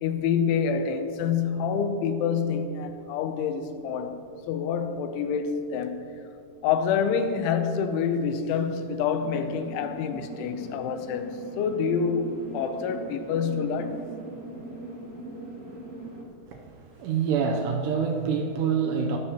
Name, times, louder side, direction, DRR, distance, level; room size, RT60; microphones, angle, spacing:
voice 1, 0.0-6.1 6.6-14.0, left 6 dB, 85° left, 3.2 m, -27 dB
sound 1, 9.1-16.2, right 2 dB, 45° right, 1.2 m, -40 dB
voice 2, 16.4-19.2, right 6 dB, 80° right, 2.6 m, -26 dB
23.0 x 11.5 x 3.0 m
omnidirectional pair, 5.4 m